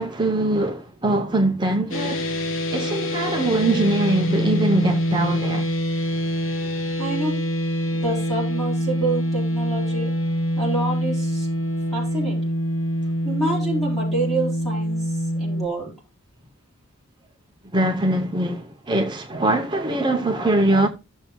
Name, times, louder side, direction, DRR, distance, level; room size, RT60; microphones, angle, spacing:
voice 1, 0.0-2.2 2.7-5.6 17.7-20.9, right 2 dB, 20° right, 0.7 m, -22 dB
sound 1, 1.9-15.7, equal, 65° left, 1.3 m, -25 dB
voice 2, 6.6-7.3 7.9-10.1 10.6-11.5 11.9-12.4 13.2-15.9, right 2 dB, ahead, 4.6 m, -28 dB
15.0 x 7.2 x 2.2 m
head